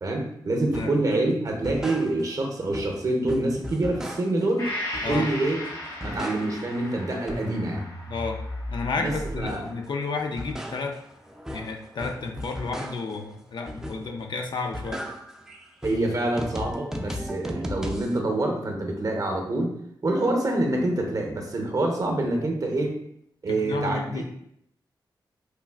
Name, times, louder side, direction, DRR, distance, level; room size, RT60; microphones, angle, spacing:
voice 1, 0.0-4.7 5.1-5.6 6.0-7.9 9.0-9.6 15.8-19.7 20.0-22.9 23.4-24.2, right 2 dB, 45° right, 2 dB, 0.6 m, -26 dB
sound 1, 0.7-1.0 1.5-2.5 2.7-4.5 4.9-5.6 5.8-6.8 7.1-9.8 10.2-13.2 13.7-14.3 14.6-18.2, equal, 5° right, 0.3 m, -36 dB
Gong, 4.6-12.2 12.6-12.7, left 1 dB, 80° left, 1.1 m, -38 dB
voice 2, 8.1-8.4 8.7-11.0 11.5-15.0 23.5-24.2, left 4 dB, 65° left, 3 dB, 0.4 m, -31 dB
3.2 x 2.4 x 2.3 m, 0.72 s
cardioid pair, 70°, 8 cm